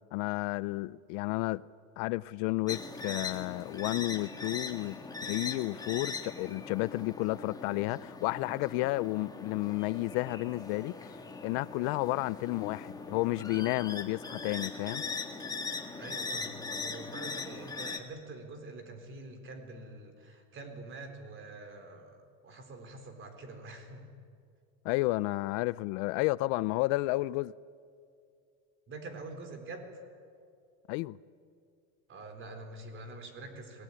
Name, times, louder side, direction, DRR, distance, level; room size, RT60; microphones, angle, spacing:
voice 1, 0.1-1.6 2.0-11.1 11.4-15.0 24.8-27.5 30.9-31.2, left 20 dB, 55° left, 0.5 m, -32 dB
sound 1, 2.7-18.0, left 4 dB, 10° left, 1.7 m, -40 dB
voice 2, 16.0-24.1 28.9-29.9 32.1-33.8, right 2 dB, 30° right, 4.1 m, -46 dB
25.0 x 19.5 x 10.0 m
supercardioid pair, 140°, 40 cm